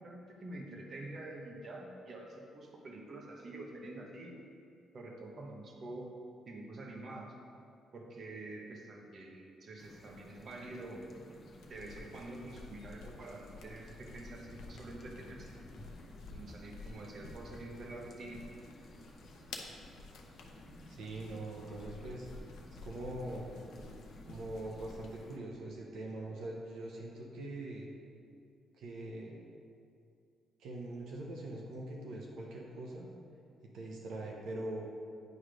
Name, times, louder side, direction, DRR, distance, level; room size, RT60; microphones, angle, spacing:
voice 1, 0.0-4.4 4.9-6.1 6.5-7.4 7.9-11.1 11.7-15.5 16.3-18.4, right 2 dB, 50° right, 0 dB, 1.0 m, -47 dB
sound 1, 9.8-25.4, left 1 dB, 40° left, 1.0 m, -54 dB
sound 2, 10.1-25.2, left 3 dB, 80° left, 0.7 m, -53 dB
voice 2, 20.9-22.3 22.8-23.5 24.3-27.9 28.8-29.4 30.6-33.1 33.7-34.9, right 2 dB, 80° right, -2 dB, 0.9 m, -42 dB
9.4 x 3.2 x 5.1 m, 2.4 s
cardioid pair, 90°, 0 cm